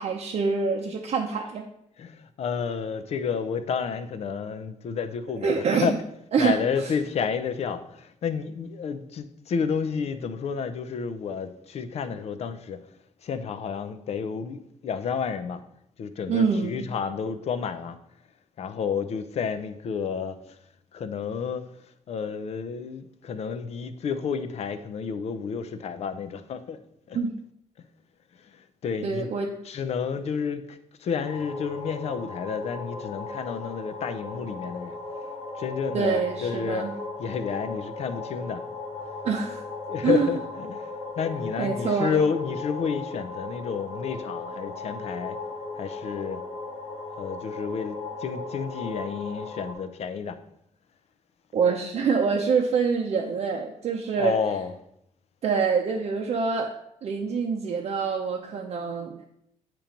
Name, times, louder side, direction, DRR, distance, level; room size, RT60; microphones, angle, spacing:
voice 1, 0.0-1.6 5.4-6.0 6.3-6.6 6.8-6.9 16.3-16.9 27.1-27.3 29.0-29.5 35.9-36.9 39.2-39.6 40.0-40.3 41.6-42.2 51.5-54.3 55.4-56.7 57.0-59.2, right 5 dB, 55° right, 0.7 m, -25 dB
voice 2, 2.0-12.8 13.2-15.6 16.0-18.0 18.6-20.6 20.9-21.7 22.1-26.8 27.1-27.2 28.4-29.3 29.6-35.0 35.6-36.9 37.2-38.7 39.9-45.4 45.8-46.4 47.2-50.4 54.2-54.8, left 6 dB, 55° left, 0.6 m, -30 dB
sound 1, 31.2-49.7, left 3 dB, 80° left, 1.9 m, -37 dB
8.6 x 3.0 x 5.1 m
cardioid pair, 125°, 13 cm